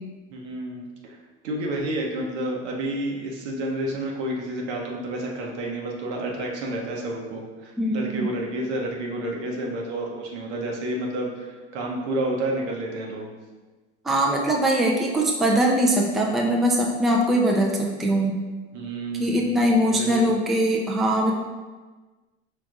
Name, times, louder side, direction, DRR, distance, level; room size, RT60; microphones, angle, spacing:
voice 1, 0.3-1.2 1.4-13.3 18.7-19.5 19.8-20.3, right 1 dB, 75° right, -1 dB, 1.0 m, -30 dB
voice 2, 7.8-8.3 14.0-18.4 19.2-21.3, right 1 dB, ahead, -1 dB, 0.4 m, -21 dB
4.9 x 3.4 x 2.5 m, 1.3 s
hypercardioid pair, 85°, 34 cm